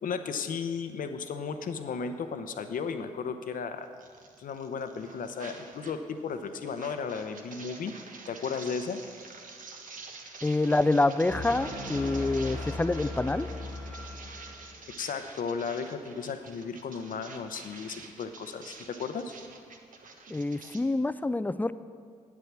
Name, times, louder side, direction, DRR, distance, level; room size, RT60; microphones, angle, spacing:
voice 1, 0.0-3.9 4.4-7.9 8.3-9.0 15.0-19.3, left 5 dB, 60° left, 8 dB, 0.8 m, -35 dB
sound 1, 4.0-6.0 6.3-20.8, right 4 dB, 55° right, 1.2 m, -48 dB
voice 2, 10.4-13.5 20.3-21.7, left 2 dB, 10° left, 15 dB, 0.4 m, -27 dB
sound 2, 11.3-15.1, left 1 dB, 75° right, 2.1 m, -38 dB
8.7 x 8.3 x 6.0 m, 2.1 s
hypercardioid pair, 40°, 16 cm